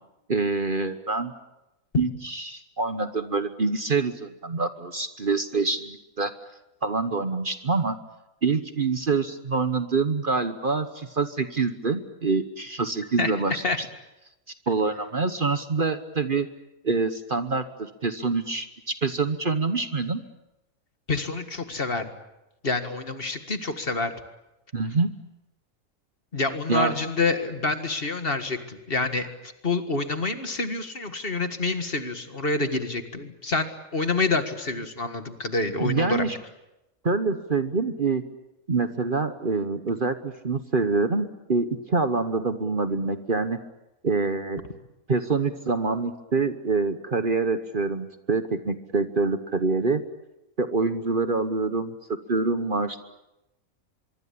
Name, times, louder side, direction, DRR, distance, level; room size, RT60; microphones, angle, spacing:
voice 1, 0.3-1.3 2.0-6.3 6.8-8.0 8.4-13.9 14.7-16.5 16.8-20.2 24.7-25.1 26.7-26.9 35.8-36.4 37.0-38.2 38.7-43.6 44.0-44.6 45.1-50.0 50.6-51.9 52.3-53.0, right 4 dB, 40° right, 10 dB, 1.2 m, -26 dB
voice 2, 21.1-22.1 22.6-24.1 26.3-29.3 29.6-36.3, left 3 dB, 40° left, 8 dB, 2.0 m, -27 dB
24.5 x 23.5 x 8.5 m, 0.93 s
omnidirectional pair, 1.5 m